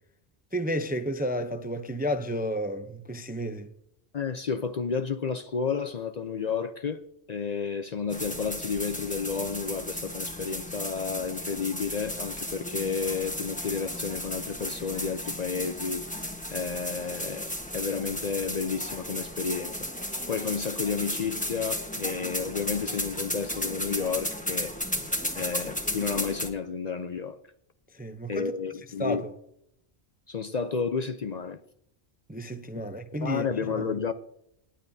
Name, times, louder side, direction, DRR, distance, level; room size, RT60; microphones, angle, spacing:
voice 1, 0.5-3.7 25.1-25.5 27.9-28.5 29.0-29.3 32.3-33.5 33.8-34.0, equal, 10° right, 0.4 m, -32 dB
voice 2, 4.1-7.0 7.3-16.1 16.5-19.8 20.3-24.8 25.4-27.4 28.3-29.3 30.3-31.6 33.2-34.1, left 5 dB, 50° left, 0.6 m, -31 dB
sound 1, 8.1-26.5, left 1 dB, 10° left, 1.1 m, -34 dB
18.5 x 10.0 x 2.7 m
omnidirectional pair, 1.1 m